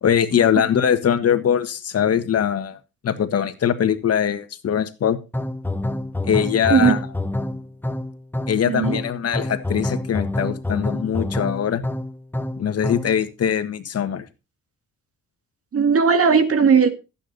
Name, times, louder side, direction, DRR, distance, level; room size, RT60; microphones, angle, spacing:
voice 1, 0.0-2.8 3.0-5.2 6.2-7.1 8.5-11.8 12.6-14.2, left 8 dB, 55° left, 10 dB, 1.5 m, -21 dB
sound 1, 5.3-13.2, left 1 dB, 5° left, 1.0 m, -27 dB
voice 2, 8.7-9.0 15.7-16.9, right 6 dB, 50° right, 9 dB, 2.0 m, -16 dB
13.5 x 8.7 x 4.0 m, 0.29 s
cardioid pair, 90°, 30 cm